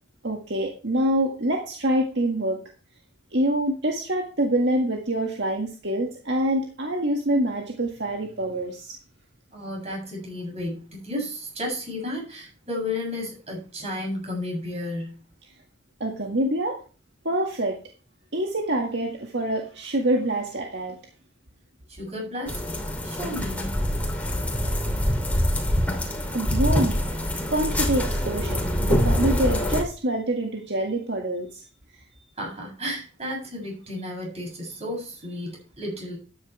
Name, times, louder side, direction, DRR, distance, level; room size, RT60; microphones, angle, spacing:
voice 1, 0.2-2.6 3.3-9.0 16.0-16.8 17.2-17.8 18.3-21.0 26.3-27.0 27.5-31.6, right 1 dB, 65° right, 1 dB, 1.9 m, -26 dB
voice 2, 9.5-15.1 21.9-22.6 23.0-23.8 32.4-36.2, left 1 dB, 35° right, -1 dB, 7.8 m, -33 dB
sound 1, 22.5-29.8, equal, 10° left, 2.8 m, -25 dB
13.0 x 10.0 x 3.4 m, 0.35 s
head